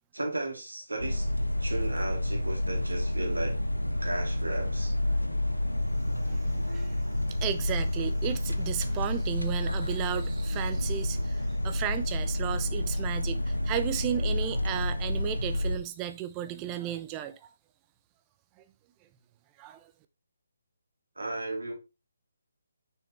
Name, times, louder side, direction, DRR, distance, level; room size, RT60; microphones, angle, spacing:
voice 1, 0.1-1.3 1.6-3.6 4.0-5.0 21.2-21.7, right 2 dB, 70° right, 2.7 m, -34 dB
sound 1, 1.0-15.8, left 1 dB, 80° left, 0.9 m, -29 dB
voice 2, 6.3-6.9 7.4-17.4 18.6-18.7 19.6-19.9, right 11 dB, 20° right, 0.6 m, -34 dB
6.5 x 6.3 x 3.2 m
figure-of-eight pair, 140°, 0 cm